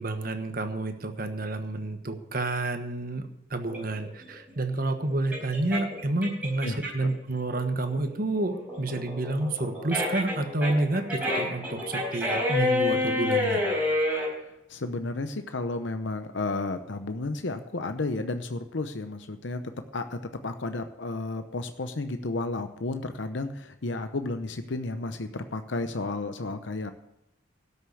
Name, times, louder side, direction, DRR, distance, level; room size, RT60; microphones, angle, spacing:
voice 1, 0.0-3.2 3.5-11.0 11.3-13.6, right 2 dB, 45° right, 7 dB, 1.3 m, -29 dB
sound 1, 3.7-7.1 7.5-14.3, left 2 dB, 10° right, 5.1 m, -28 dB
voice 2, 14.4-19.6 19.9-26.9, left 2 dB, 70° left, 8 dB, 0.8 m, -32 dB
12.5 x 6.8 x 8.4 m, 0.86 s
head